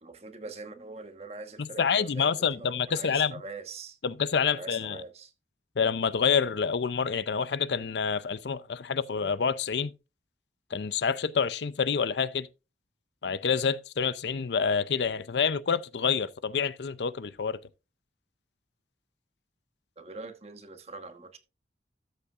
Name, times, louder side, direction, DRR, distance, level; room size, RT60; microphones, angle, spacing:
voice 1, 0.0-4.0 4.5-5.3 20.0-21.4, right 3 dB, 35° right, 1.3 m, -43 dB
voice 2, 1.6-3.3 4.0-5.0 5.8-9.9 10.7-12.5 13.2-17.6, left 6 dB, 75° left, 0.5 m, -27 dB
13.0 x 8.2 x 2.5 m
head